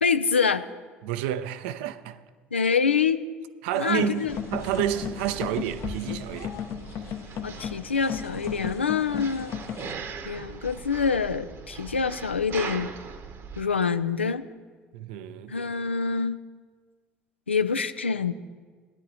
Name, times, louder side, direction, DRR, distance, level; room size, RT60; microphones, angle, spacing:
voice 1, 0.0-0.6 2.5-3.2 3.7-4.4 7.4-9.6 10.3-12.9 13.6-14.5 15.5-16.4 17.5-18.3, left 5 dB, 85° left, 0.3 m, -26 dB
voice 2, 1.0-2.2 3.6-6.5 14.9-15.5, right 11 dB, 65° right, 0.5 m, -30 dB
sound 1, 3.7-9.9, left 8 dB, 50° left, 0.7 m, -35 dB
sound 2, 4.3-13.6, right 5 dB, 45° right, 1.0 m, -40 dB
18.0 x 10.0 x 2.7 m
figure-of-eight pair, 60°, 6 cm